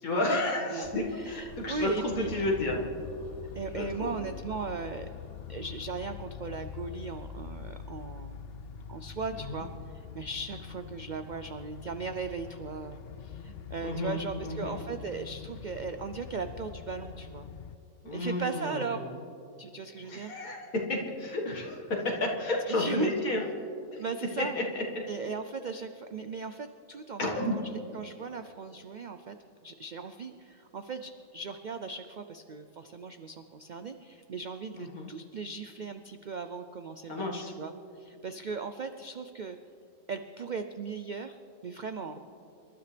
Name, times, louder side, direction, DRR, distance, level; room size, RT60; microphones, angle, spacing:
voice 1, 0.0-2.8 3.8-4.1 9.5-9.6 13.8-14.8 18.0-19.0 20.1-23.4 24.4-24.8 27.2-27.6 34.8-35.1 37.1-37.5, left 2 dB, 90° left, -1 dB, 2.2 m, -31 dB
voice 2, 0.7-2.3 3.5-5.1 5.5-8.4 8.9-17.5 18.1-19.1 19.6-20.3 22.7-23.1 24.0-24.6 25.1-29.4 29.6-39.6 40.1-42.2, right 4 dB, 75° right, 8 dB, 0.4 m, -38 dB
sound 1, 0.8-17.8, left 8 dB, 60° left, 0.6 m, -44 dB
26.0 x 12.5 x 3.3 m, 2.7 s
omnidirectional pair, 1.4 m